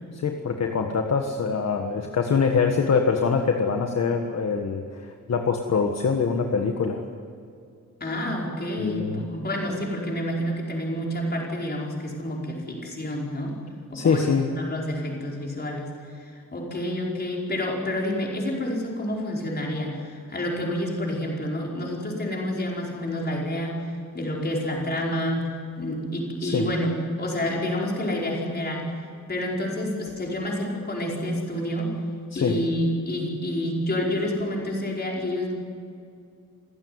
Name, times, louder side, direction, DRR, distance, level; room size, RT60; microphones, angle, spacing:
voice 1, 0.1-7.0 8.8-9.2 13.9-14.5 26.4-26.7 32.3-32.6, left 5 dB, 55° left, 4 dB, 1.6 m, -24 dB
voice 2, 8.0-13.6 13.9-25.5 25.8-26.9 27.2-28.9 29.3-31.9 32.3-35.6, left 1 dB, 30° left, -2 dB, 5.1 m, -29 dB
27.5 x 16.0 x 9.6 m, 2.4 s
wide cardioid pair, 175°, 32 cm